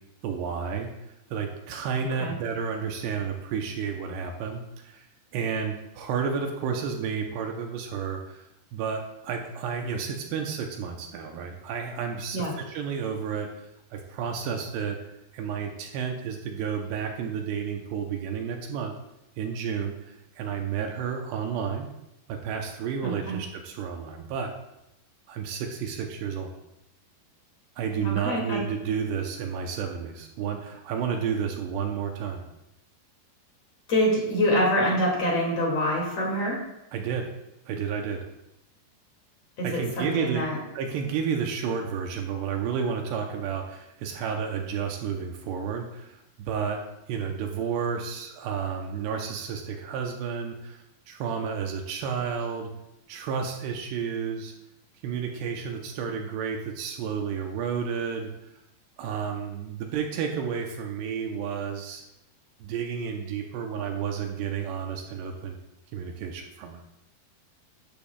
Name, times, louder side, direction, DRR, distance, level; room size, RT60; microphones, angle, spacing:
voice 1, 0.2-0.9 1.3-5.1 5.3-8.5 8.7-15.0 15.3-18.9 19.4-21.9 22.3-24.5 25.3-26.5 27.8-32.4 36.9-37.3 37.7-38.2 39.6-40.5 40.7-46.8 47.1-52.7 53.1-54.5 55.0-58.3 59.0-62.0 62.6-65.6 65.9-66.8, right 6 dB, 80° right, 2 dB, 2.8 m, -31 dB
voice 2, 23.0-23.4 28.0-28.6 33.9-36.6 39.6-40.6, equal, 40° left, -2 dB, 3.0 m, -25 dB
12.0 x 10.5 x 2.4 m, 0.87 s
omnidirectional pair, 5.0 m